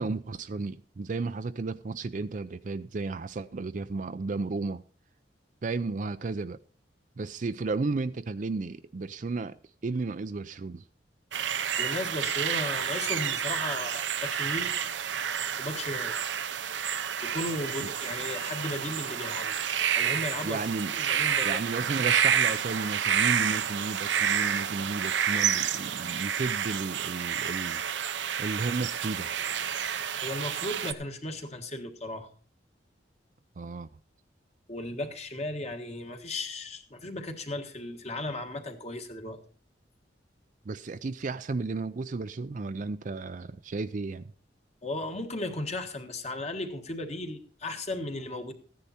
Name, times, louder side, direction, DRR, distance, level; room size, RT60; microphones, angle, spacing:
voice 1, 0.0-4.8 5.6-6.6 7.2-9.6 9.8-10.8 17.8-17.9 20.4-21.0 21.4-27.8 28.4-29.3 33.6-33.9 40.7-44.3, right 3 dB, 45° right, 0.4 m, -33 dB
sound 1, 11.3-30.9, right 8 dB, 80° right, 0.7 m, -29 dB
voice 2, 11.8-14.7 15.6-16.2 17.2-19.5 19.9-20.6 20.9-21.6 30.2-32.3 34.7-39.4 44.8-48.5, left 2 dB, 35° left, 1.5 m, -35 dB
14.0 x 10.0 x 4.2 m
head